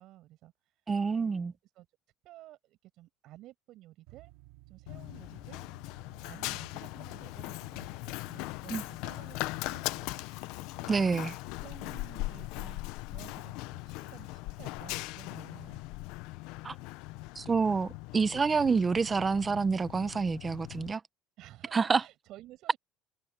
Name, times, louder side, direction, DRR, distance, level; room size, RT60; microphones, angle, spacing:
voice 1, 0.0-0.8 1.1-1.9 2.2-4.3 4.7-5.6 6.2-15.8 21.4-22.8, right 15 dB, 60° right, 7.0 m, -54 dB
voice 2, 0.9-1.5 8.7-8.8 10.9-11.3 16.6-16.7 17.4-21.0 21.7-22.0, right 5 dB, 20° right, 0.7 m, -28 dB
sound 1, 4.1-14.9, right 19 dB, 90° right, 3.1 m, -62 dB
Run, 4.9-20.9, left 20 dB, 75° left, 0.7 m, -40 dB
cardioid pair, 140°, 0 cm